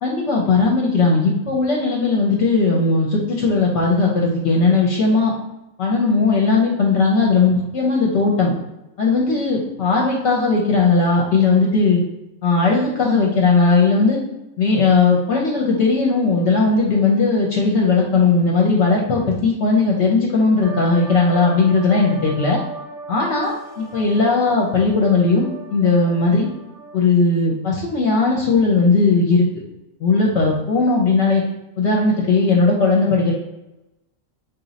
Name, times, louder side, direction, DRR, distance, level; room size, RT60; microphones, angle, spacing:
voice 1, 0.0-5.3 5.8-8.5 9.0-12.0 12.4-14.2 14.6-22.6 23.1-26.5 26.9-29.4 30.0-31.4 31.8-33.3, left 3 dB, 65° left, -3 dB, 0.9 m, -17 dB
sound 1, 20.6-27.0, right 2 dB, 90° right, 1.0 m, -36 dB
3.1 x 2.4 x 3.8 m, 0.97 s
omnidirectional pair, 1.4 m